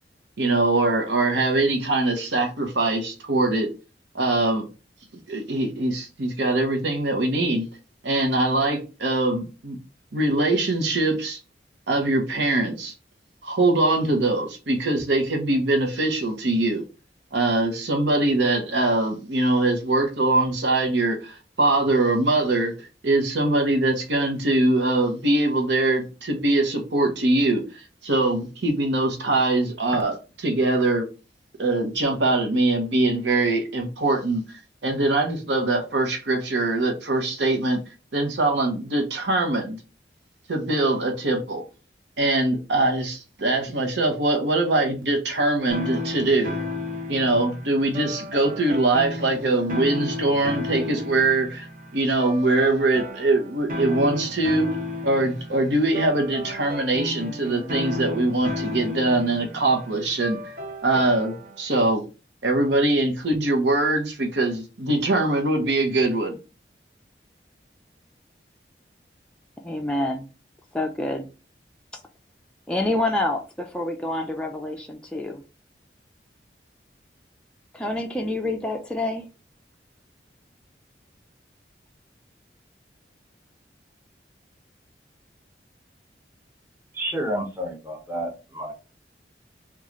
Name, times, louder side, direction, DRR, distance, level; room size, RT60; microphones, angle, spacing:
voice 1, 0.4-3.7 4.1-4.6 5.1-7.7 8.0-9.8 10.1-11.4 11.9-12.9 13.4-16.8 17.3-31.1 31.6-37.8 38.1-39.8 40.5-41.6 42.2-46.6 47.1-51.7 51.9-54.7 55.0-60.5 60.8-62.0 62.4-66.4, right 2 dB, 85° right, 3 dB, 0.8 m, -22 dB
sound 1, 45.7-61.6, left 2 dB, 50° right, 0.7 m, -33 dB
voice 2, 69.6-70.2 70.7-71.3 72.7-75.4 77.7-79.3, left 1 dB, 5° left, 2 dB, 0.3 m, -27 dB
voice 3, 86.9-88.7, right 1 dB, 10° right, 1 dB, 0.8 m, -30 dB
3.1 x 2.3 x 3.6 m, 0.32 s
head